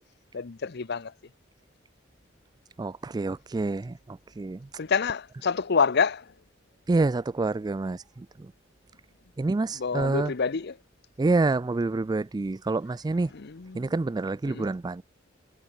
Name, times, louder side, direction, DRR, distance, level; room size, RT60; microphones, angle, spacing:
voice 1, 0.3-1.1 4.8-6.3 9.8-10.8 13.3-13.9 14.5-14.7, left 5 dB, 60° left, 0.7 m, -27 dB
voice 2, 2.8-4.7 6.9-8.5 9.4-10.3 11.2-13.3 13.7-15.0, right 3 dB, 20° right, 0.3 m, -27 dB
head